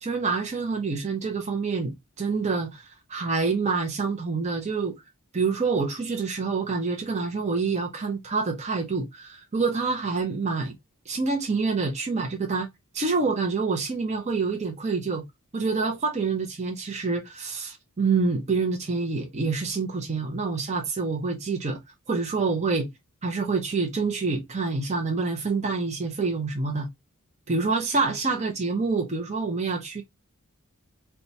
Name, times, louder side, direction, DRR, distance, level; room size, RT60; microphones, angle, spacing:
voice 1, 0.0-2.8 3.1-5.0 5.3-10.7 11.1-12.7 12.9-15.2 15.5-21.8 22.1-22.9 23.2-26.9 27.5-30.0, right 4 dB, 30° right, 0.6 m, -27 dB
4.3 x 2.2 x 2.6 m
head